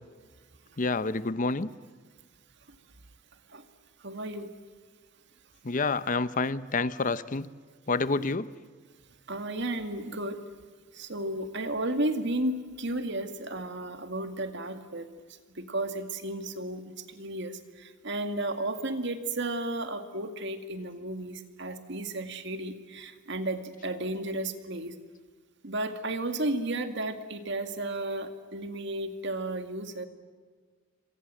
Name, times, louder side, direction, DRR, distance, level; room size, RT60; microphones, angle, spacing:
voice 1, 0.8-1.7 5.6-7.5 7.9-8.5, left 3 dB, 40° left, 15 dB, 0.7 m, -28 dB
voice 2, 4.0-4.5 9.3-10.4 10.9-15.1 15.6-25.0 25.6-30.1, right 1 dB, 60° right, 8 dB, 2.2 m, -33 dB
27.5 x 25.5 x 7.8 m, 1.5 s
head